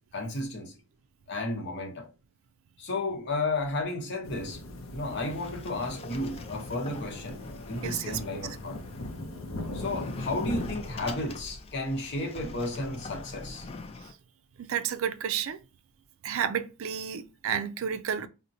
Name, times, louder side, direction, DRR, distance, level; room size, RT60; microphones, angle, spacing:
voice 1, 0.1-0.7 1.3-2.1 2.8-4.6 4.9-7.4 7.7-8.8 9.7-13.7, left 2 dB, 55° left, 0.9 m, -33 dB
sound 1, 4.2-10.7, left 1 dB, 70° left, 0.6 m, -39 dB
Sliding door, 4.7-14.1, left 3 dB, 30° left, 0.3 m, -44 dB
voice 2, 7.8-8.4 14.6-15.6 16.2-18.3, right 8 dB, 70° right, 0.4 m, -31 dB
4.9 x 2.1 x 2.7 m
head